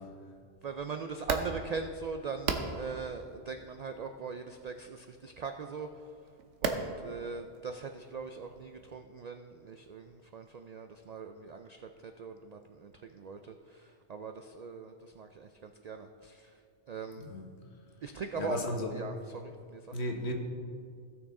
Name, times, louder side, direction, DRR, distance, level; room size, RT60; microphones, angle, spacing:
voice 1, 0.6-5.9 6.6-16.5 16.9-17.2 18.0-18.6 18.9-19.8, right 5 dB, 65° right, 6 dB, 0.4 m, -41 dB
sound 1, 1.1-9.0, right 4 dB, 90° right, 1.1 m, -40 dB
voice 2, 18.4-18.9 19.9-20.3, left 1 dB, 65° left, 1 dB, 1.4 m, -34 dB
16.5 x 6.1 x 3.7 m, 2.2 s
omnidirectional pair, 1.2 m